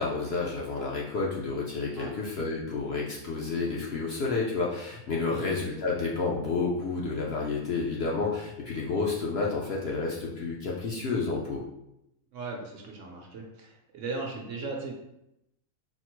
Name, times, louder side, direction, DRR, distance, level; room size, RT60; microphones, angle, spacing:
voice 1, 0.0-11.6, left 4 dB, 55° left, -3 dB, 0.8 m, -30 dB
voice 2, 12.3-14.9, right 3 dB, 65° right, 1 dB, 1.0 m, -37 dB
4.2 x 2.0 x 4.4 m, 0.84 s
omnidirectional pair, 1.5 m